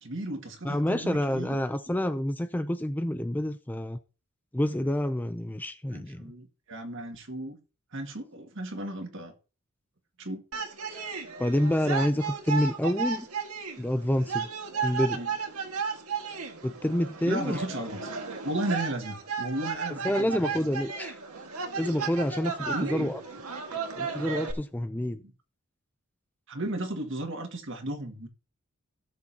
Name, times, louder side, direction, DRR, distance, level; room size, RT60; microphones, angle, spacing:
voice 1, 0.0-1.6 5.9-7.6 7.9-9.3 10.2-10.4 15.1-15.3 17.2-18.1 18.4-20.4 22.7-23.2 25.2-25.3 26.5-28.3, right 1 dB, 60° right, 2.0 m, -34 dB
voice 2, 0.6-4.0 4.5-6.3 10.9-13.3 13.8-14.5 14.8-15.2 16.6-17.6 20.0-21.2 21.8-23.2 24.0-25.2, left 1 dB, 10° left, 0.5 m, -28 dB
sound 1, 10.5-24.5, right 5 dB, 90° right, 1.7 m, -34 dB
17.0 x 7.3 x 2.8 m
head